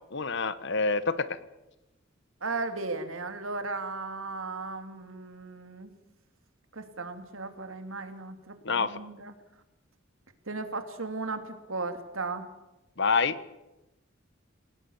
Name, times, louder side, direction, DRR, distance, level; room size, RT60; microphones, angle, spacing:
voice 1, 0.1-1.4 8.6-9.0 13.0-13.4, left 4 dB, 60° left, 15 dB, 1.2 m, -27 dB
voice 2, 2.4-5.9 6.7-9.3 10.5-12.5, right 3 dB, 85° right, 8 dB, 2.8 m, -36 dB
29.0 x 18.0 x 7.2 m, 1.0 s
head